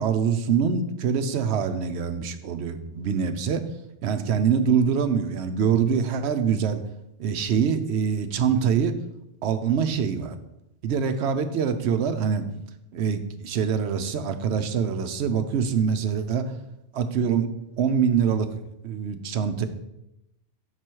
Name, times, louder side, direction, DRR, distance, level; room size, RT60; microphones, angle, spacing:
voice 1, 0.0-3.6 4.0-6.8 7.2-9.0 9.4-10.4 10.8-12.5 12.9-16.4 16.9-17.5 17.8-18.5 18.8-19.7, right 7 dB, 70° right, 9 dB, 0.8 m, -24 dB
6.0 x 4.8 x 4.5 m, 0.86 s
omnidirectional pair, 1.2 m